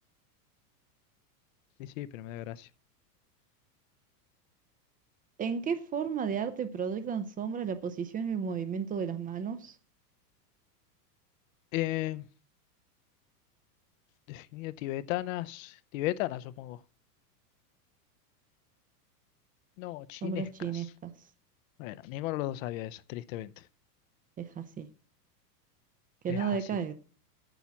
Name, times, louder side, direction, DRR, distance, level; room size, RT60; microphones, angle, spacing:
voice 1, 1.8-2.7 11.7-12.2 14.3-16.8 19.8-20.7 21.8-23.5 26.3-26.6, left 16 dB, 55° left, 0.7 m, -35 dB
voice 2, 5.4-9.8 20.2-21.1 24.4-24.9 26.2-26.9, right 6 dB, 20° right, 0.5 m, -33 dB
9.1 x 7.2 x 7.1 m
supercardioid pair, 135°, 48 cm